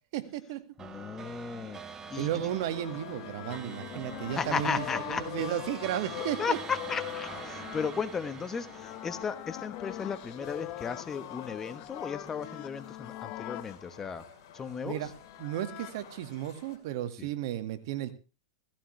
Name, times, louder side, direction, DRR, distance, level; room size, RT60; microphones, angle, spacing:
voice 1, 0.1-0.6 2.2-6.6 14.8-15.1 15.4-18.1, right 12 dB, 60° right, 10 dB, 1.8 m, -34 dB
voice 2, 0.8-1.8 2.1-2.3 4.4-5.2 6.4-14.2 14.5-15.0 17.2-17.3, left 6 dB, 15° left, 12 dB, 1.1 m, -35 dB
sound 1, 0.8-10.4, right 7 dB, 20° right, 1.2 m, -46 dB
sound 2, 2.0-13.8 14.9-15.9, left 16 dB, 40° left, 0.9 m, -42 dB
sound 3, 2.5-16.8, left 7 dB, 70° left, 5.4 m, -52 dB
16.5 x 15.5 x 3.3 m, 0.31 s
supercardioid pair, 140°, 2 cm